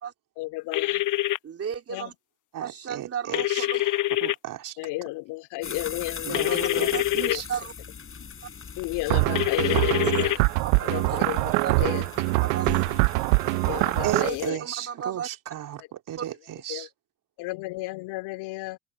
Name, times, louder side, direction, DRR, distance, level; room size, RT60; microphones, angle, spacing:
voice 1, 0.4-1.0 1.9-2.1 4.8-7.4 8.8-10.4 10.8-12.1 13.5-14.6 15.8-15.9 16.7-16.9 17.4-18.8, left 21 dB, 65° left, 3.1 m, -33 dB
sound 1, 0.7-1.4 3.3-4.3 6.3-7.4 9.3-10.4, left 17 dB, 45° left, 1.2 m, -25 dB
voice 2, 1.4-2.1 2.6-3.8 6.5-6.6 6.9-7.0 7.5-7.7 10.0-10.4 10.8-11.2 11.6-12.0 12.4-13.0 13.6-13.7 14.1-15.3 16.2-16.3, right 7 dB, 35° right, 3.4 m, -34 dB
voice 3, 2.5-4.8 6.3-7.5 14.0-16.9, right 12 dB, 50° right, 3.3 m, -35 dB
sound 2, 5.6-14.5, left 6 dB, 30° left, 6.3 m, -40 dB
sound 3, 9.1-14.3, right 30 dB, 70° right, 0.5 m, -24 dB
open air
hypercardioid pair, 80°, 42 cm